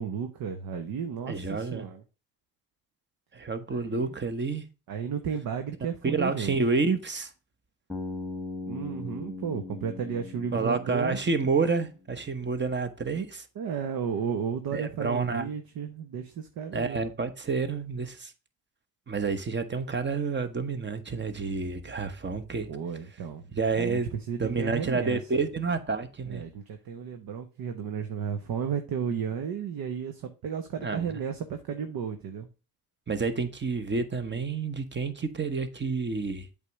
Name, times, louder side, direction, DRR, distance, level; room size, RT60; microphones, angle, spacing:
voice 1, 0.0-2.0 3.7-4.1 4.9-6.6 8.7-11.2 13.6-17.0 22.7-23.4 23.7-24.0 24.3-25.2 26.3-32.5, right 7 dB, 55° right, 1.0 m, -33 dB
voice 2, 1.3-1.9 3.3-4.6 6.0-7.3 10.5-13.4 14.7-15.5 16.7-18.3 19.1-22.7 23.5-24.1 24.4-26.4 30.8-31.2 33.1-36.5, right 4 dB, 25° right, 1.1 m, -29 dB
Bass guitar, 7.9-12.0, left 3 dB, ahead, 1.5 m, -39 dB
8.1 x 3.6 x 5.2 m
supercardioid pair, 65°, 42 cm